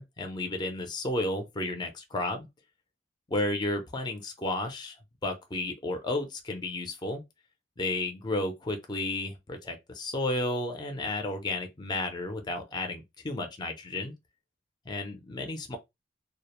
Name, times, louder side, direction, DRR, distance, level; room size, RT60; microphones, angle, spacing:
voice 1, 0.0-2.5 3.3-5.0 5.2-7.2 7.8-14.1 14.9-15.8, left 2 dB, 25° left, 0.5 m, -32 dB
2.3 x 2.0 x 2.9 m
head